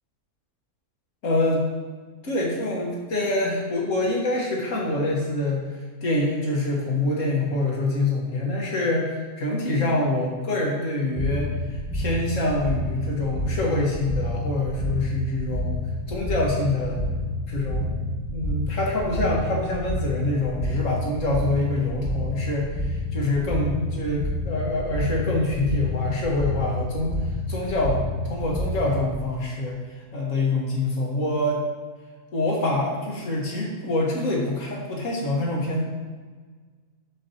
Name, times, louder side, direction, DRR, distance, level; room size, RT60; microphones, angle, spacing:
voice 1, 1.2-1.6 2.2-15.8 16.1-17.1 17.5-18.0 18.3-27.1 27.5-29.8 30.1-31.6 32.3-35.8, left 2 dB, 60° left, -2 dB, 1.7 m, -25 dB
sound 1, 11.2-29.2, left 1 dB, ahead, 0.5 m, -29 dB
6.8 x 6.6 x 2.8 m, 1.5 s
omnidirectional pair, 1.6 m